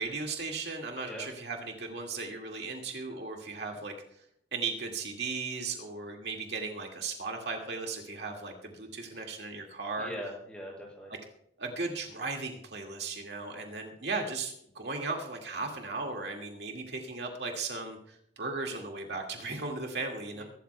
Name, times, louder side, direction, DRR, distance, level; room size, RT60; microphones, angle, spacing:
voice 1, 0.0-3.9 4.5-10.1 11.6-20.4, right 3 dB, 60° right, 1 dB, 2.1 m, -36 dB
voice 2, 1.0-1.3 9.1-9.2 10.0-11.1 20.3-20.4, equal, 5° left, -2 dB, 6.6 m, -42 dB
23.0 x 13.0 x 2.3 m, 0.72 s
head